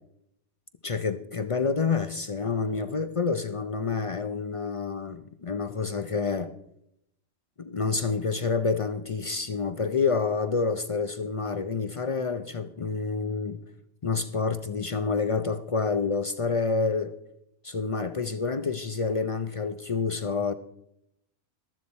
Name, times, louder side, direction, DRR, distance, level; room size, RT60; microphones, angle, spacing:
voice 1, 0.8-6.5 7.6-13.6 14.0-17.1 17.6-20.5, left 4 dB, 50° left, 0.4 m, -28 dB
14.0 x 12.5 x 4.2 m
omnidirectional pair, 1.4 m